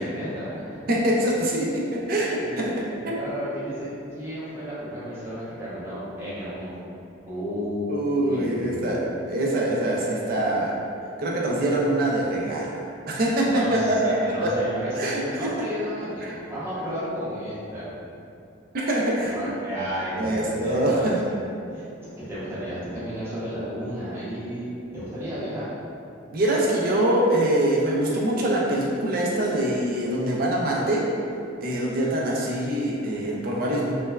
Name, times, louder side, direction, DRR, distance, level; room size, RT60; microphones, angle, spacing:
voice 1, 0.0-0.8 2.4-2.5 3.1-3.9 4.2-6.8 7.3-8.9 13.4-17.9 19.3-21.4 21.7-21.8 22.3-24.7 24.9-25.7, equal, 10° right, -11 dB, 0.6 m, -33 dB
voice 2, 0.9-2.7 3.0-3.2 7.9-9.0 9.3-10.7 11.2-14.5 14.9-15.5 16.2-16.3 18.7-19.3 20.1-21.2 26.3-31.1 31.6-34.0, right 1 dB, 45° right, -3 dB, 0.4 m, -24 dB
3.2 x 2.1 x 2.2 m, 2.5 s
head